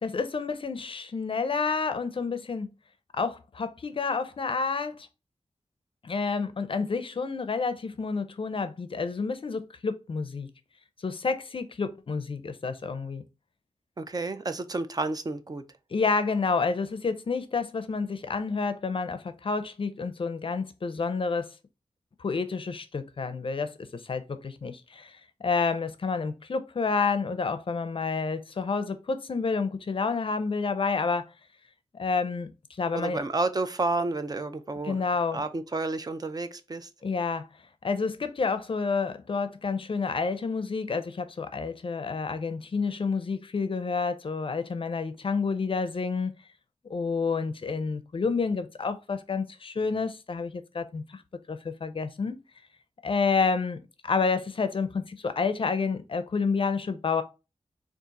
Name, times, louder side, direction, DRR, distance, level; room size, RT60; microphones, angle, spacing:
voice 1, 0.0-2.7 3.1-5.1 6.0-10.5 11.0-13.2 15.9-21.5 22.2-31.3 31.9-33.2 34.8-35.4 37.0-37.4 37.8-46.3 46.9-51.2 51.5-52.4 53.0-57.2, left 4 dB, 50° left, 0.5 m, -29 dB
voice 2, 14.0-15.6 32.9-35.0 35.3-36.9, right 3 dB, 35° right, 0.4 m, -30 dB
3.6 x 2.4 x 4.0 m
wide cardioid pair, 110°, 11 cm